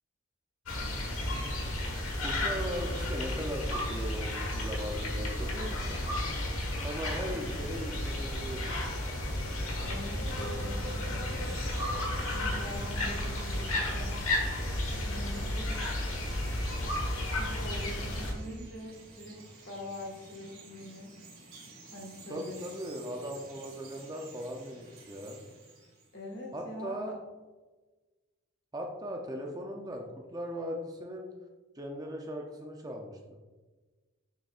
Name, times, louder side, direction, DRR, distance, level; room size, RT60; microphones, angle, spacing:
sound 1, 0.7-18.3, left 1 dB, 85° left, 1.3 m, -33 dB
voice 1, 2.2-6.0 6.8-8.8 22.3-25.4 26.5-27.2 28.7-31.3 31.7-33.4, equal, 20° right, 2 dB, 0.5 m, -38 dB
voice 2, 9.8-11.6 12.3-14.2 14.9-16.0 17.3-21.1 21.9-22.7 26.1-27.2, left 1 dB, 55° left, -1 dB, 1.5 m, -44 dB
Chirp tweet, 10.8-26.4, right 3 dB, 85° right, 1.8 m, -53 dB
6.8 x 6.3 x 2.4 m, 1.3 s
head